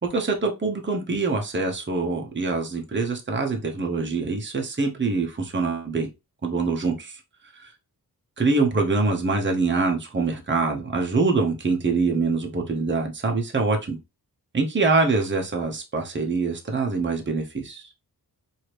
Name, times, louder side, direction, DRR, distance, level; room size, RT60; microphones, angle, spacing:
voice 1, 0.0-6.1 6.4-7.2 7.5-7.7 8.4-14.0 14.5-17.8, right 3 dB, 30° right, 0.9 m, -24 dB
4.8 x 2.8 x 3.0 m
wide cardioid pair, 125°, 39 cm